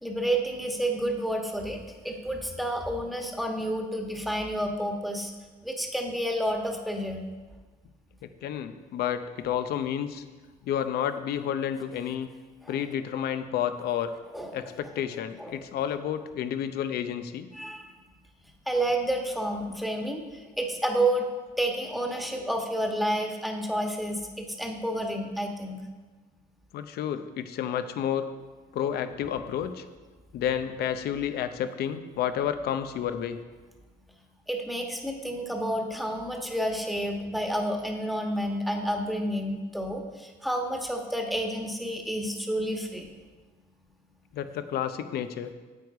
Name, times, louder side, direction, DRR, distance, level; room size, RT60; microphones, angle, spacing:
voice 1, 0.0-5.3 5.6-7.2 12.6-12.8 14.3-14.7 15.4-15.6 17.5-17.9 18.7-20.2 20.6-21.3 21.6-25.8 34.5-43.1, right 1 dB, ahead, 2 dB, 1.3 m, -30 dB
voice 2, 8.4-10.2 10.6-12.3 12.7-14.1 14.5-17.5 26.7-28.3 28.7-29.8 30.3-33.4 44.3-45.5, left 9 dB, 70° left, 10 dB, 0.7 m, -30 dB
9.5 x 8.1 x 4.8 m, 1.3 s
cardioid pair, 110°, 17 cm